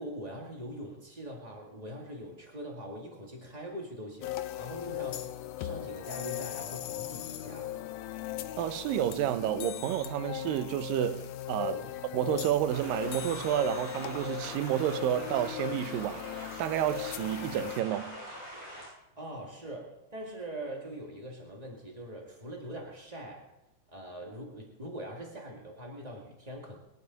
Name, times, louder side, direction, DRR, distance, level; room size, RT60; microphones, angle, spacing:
voice 1, 0.0-5.3 5.6-7.7 11.6-12.0 19.2-23.5 23.9-26.8, equal, 40° right, 0.5 m, -42 dB
sound 1, 4.2-17.8, left 13 dB, 90° left, 1.8 m, -38 dB
voice 2, 8.6-11.8 12.1-16.2 16.6-18.2, right 12 dB, 75° right, 2.2 m, -30 dB
sound 2, 12.7-18.9, equal, 30° left, 8.5 m, -44 dB
21.5 x 12.0 x 4.0 m
omnidirectional pair, 4.4 m